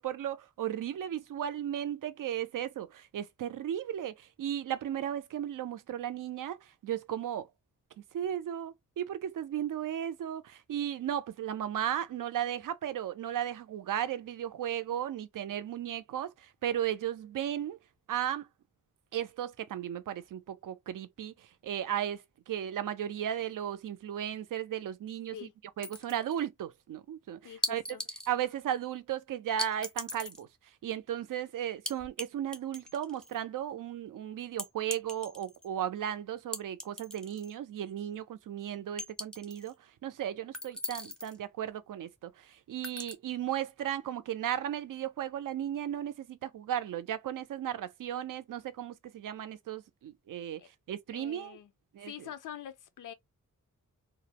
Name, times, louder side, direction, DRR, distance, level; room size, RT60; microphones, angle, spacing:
voice 1, 0.0-6.6 6.8-7.5 8.1-17.8 18.1-18.5 19.1-25.5 25.8-27.8 28.3-30.5 30.8-39.7 40.0-50.6 50.9-51.6 51.9-52.3, right 10 dB, 80° right, 0.5 m, -35 dB
sound 1, 25.8-26.4 27.6-28.3 29.6-30.4 31.9-32.3 32.5-33.4 34.6-35.7 36.5-37.5 37.9-38.0 39.0-39.7 40.5-41.4 42.8-43.1, left 1 dB, 5° left, 0.4 m, -39 dB
voice 2, 27.4-28.0 50.6-50.7 51.1-51.7 52.0-53.1, left 10 dB, 75° left, 0.4 m, -45 dB
2.4 x 2.0 x 2.8 m
wide cardioid pair, 180°, 32 cm